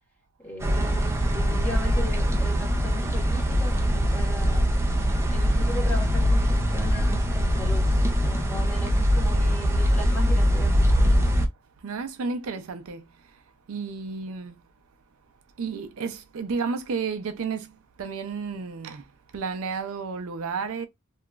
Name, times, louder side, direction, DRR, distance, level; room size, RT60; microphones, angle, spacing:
voice 1, 0.4-4.6 5.3-11.1, left 1 dB, 10° left, 1.1 m, -38 dB
sound 1, 0.6-11.5, equal, 10° right, 0.4 m, -22 dB
voice 2, 11.8-13.4 13.7-14.6 15.6-19.1 19.3-20.9, right 5 dB, 75° right, 0.4 m, -32 dB
2.9 x 2.3 x 2.2 m
head